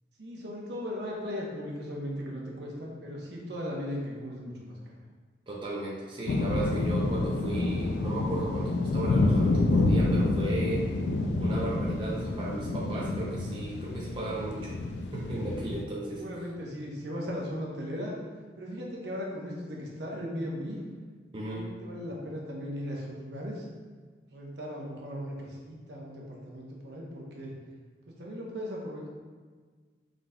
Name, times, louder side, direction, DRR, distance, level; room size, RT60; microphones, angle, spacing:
voice 1, 0.2-4.9 16.1-18.2 18.6-20.8 21.4-23.7 24.3-27.5 28.1-29.1, equal, 65° right, -3 dB, 0.9 m, -37 dB
voice 2, 5.5-10.9 11.4-14.8 15.1-16.2 21.3-21.7, right 2 dB, 30° right, -4 dB, 0.5 m, -35 dB
sound 1, 6.3-15.8, left 2 dB, 65° left, 0.3 m, -28 dB
5.0 x 3.9 x 2.2 m, 1.5 s
head